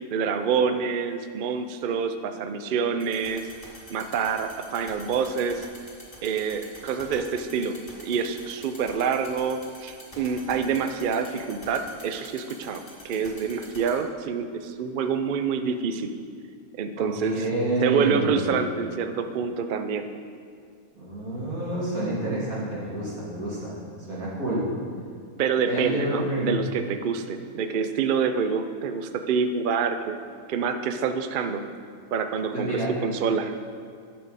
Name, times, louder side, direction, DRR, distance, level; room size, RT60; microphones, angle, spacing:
voice 1, 0.1-3.5 3.9-5.7 6.2-7.8 8.0-16.1 16.8-17.4 17.8-20.1 25.4-30.2 30.5-31.6 32.1-33.5, right 6 dB, 60° right, 8 dB, 0.5 m, -27 dB
sound 1, 3.0-13.9, left 1 dB, 25° left, 2.2 m, -44 dB
voice 2, 17.0-18.5 21.0-23.8 24.1-24.7 25.7-26.6 32.5-32.9, right 1 dB, 80° right, -7 dB, 3.0 m, -28 dB
12.5 x 6.8 x 4.1 m, 2.2 s
omnidirectional pair, 1.5 m